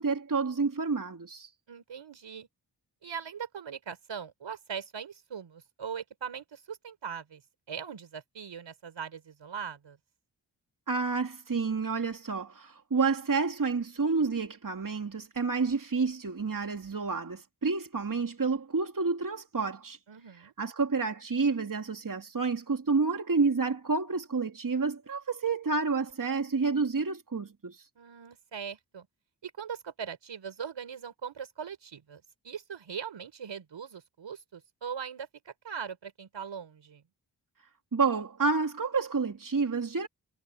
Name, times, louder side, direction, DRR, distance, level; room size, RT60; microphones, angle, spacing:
voice 1, 0.0-1.5 10.9-20.0 20.6-27.9 37.9-40.1, right 4 dB, 45° right, 2.9 m, -29 dB
voice 2, 1.7-2.5 3.0-7.4 7.7-10.0 20.1-20.5 28.0-29.1 29.4-37.0, right 7 dB, 80° right, 5.2 m, -40 dB
cardioid pair, 40°, 44 cm